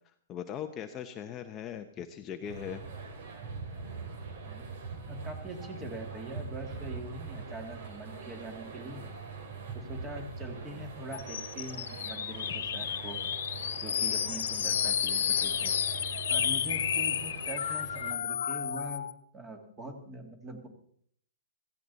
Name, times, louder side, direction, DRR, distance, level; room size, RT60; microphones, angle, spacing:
voice 1, 0.3-2.8, left 8 dB, 20° left, 6 dB, 0.8 m, -39 dB
sound 1, 2.4-18.1, right 5 dB, 60° right, 3.4 m, -43 dB
voice 2, 5.1-9.0 9.7-13.2 13.8-15.8 16.3-19.1 19.3-20.7, right 1 dB, 15° right, 5 dB, 2.3 m, -43 dB
sound 2, 11.1-19.1, left 9 dB, 70° left, 1.3 m, -31 dB
16.5 x 15.0 x 4.1 m, 0.64 s
hypercardioid pair, 155°, 0 cm